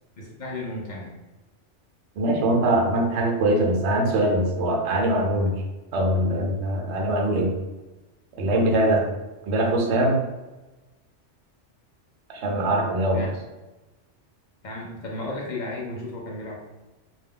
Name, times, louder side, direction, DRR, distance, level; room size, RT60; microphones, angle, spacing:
voice 1, 0.2-1.2 13.1-13.3 14.6-16.6, left 2 dB, 55° left, -3 dB, 0.5 m, -34 dB
voice 2, 2.2-5.6 5.9-7.5 8.4-9.1 9.4-10.3 12.3-13.2, right 1 dB, 70° right, 0 dB, 0.9 m, -22 dB
2.2 x 2.2 x 3.5 m, 1.1 s
omnidirectional pair, 1.2 m